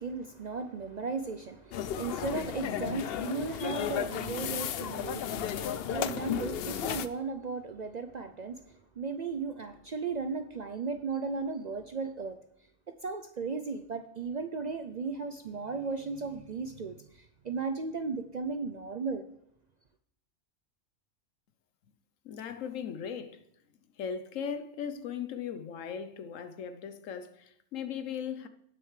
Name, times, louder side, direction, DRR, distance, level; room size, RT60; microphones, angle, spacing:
voice 1, 0.0-12.4 13.0-19.3, right 4 dB, 55° right, 0.5 m, -36 dB
sound 1, 1.7-7.1, left 9 dB, 60° left, 0.7 m, -34 dB
voice 2, 22.2-23.5 24.0-28.5, left 7 dB, 90° left, 1.2 m, -38 dB
18.0 x 6.6 x 3.2 m
omnidirectional pair, 1.3 m